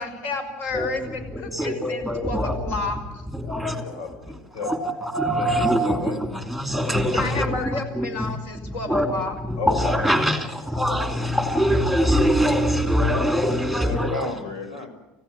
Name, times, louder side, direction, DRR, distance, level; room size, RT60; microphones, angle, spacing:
voice 1, 0.0-3.2 7.1-9.3, left 3 dB, 50° left, 5.4 m, -31 dB
voice 2, 1.6-2.5 3.5-3.7 4.6-4.8 5.1-6.2 6.6-7.5 8.0-8.1 8.9-9.1 9.7-10.4 10.7-14.1, equal, 5° left, 2.8 m, -22 dB
voice 3, 3.6-4.7 5.0-6.3 9.6-10.4 13.4-14.9, left 4 dB, 85° left, 6.8 m, -34 dB
29.5 x 16.0 x 8.7 m
cardioid pair, 175°, 4 cm